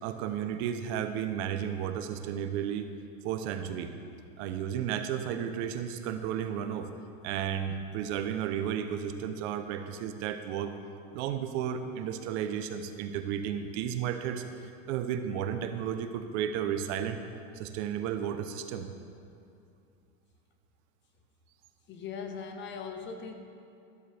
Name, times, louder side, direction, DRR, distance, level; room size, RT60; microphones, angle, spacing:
voice 1, 0.0-2.9 3.2-3.9 4.4-6.9 7.2-10.7 11.1-14.4 14.9-17.2 17.5-18.9, right 9 dB, 55° right, 8 dB, 0.9 m, -33 dB
voice 2, 21.9-23.3, left 5 dB, 25° left, 5 dB, 0.8 m, -39 dB
14.0 x 12.0 x 3.5 m, 2.6 s
supercardioid pair, 145°, 42 cm